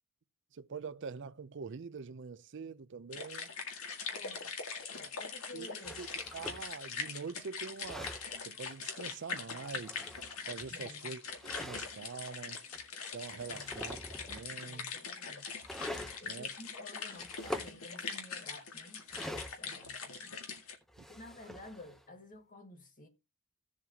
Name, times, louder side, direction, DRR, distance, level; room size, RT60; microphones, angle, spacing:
voice 1, 0.5-3.5 5.5-5.7 6.0-6.1 6.3-8.2 8.4-10.0 10.5-12.6 13.1-14.0 14.3-14.9 16.2-16.5 21.0-21.1, right 5 dB, 55° right, 0.5 m, -44 dB
sound 1, 3.1-20.7, left 5 dB, 70° left, 1.9 m, -42 dB
voice 2, 4.1-4.5 4.9-6.0 10.7-11.2 13.5-13.8 14.6-15.5 16.2-20.4 21.1-23.1, left 2 dB, 40° left, 1.9 m, -52 dB
sound 2, 5.8-6.7 7.6-8.3 9.6-10.7 11.4-12.0 12.7-12.8 13.3-14.5 15.6-16.2 17.2-17.7 19.1-19.9 20.8-22.1, left 1 dB, ahead, 0.7 m, -44 dB
16.0 x 7.3 x 2.8 m
head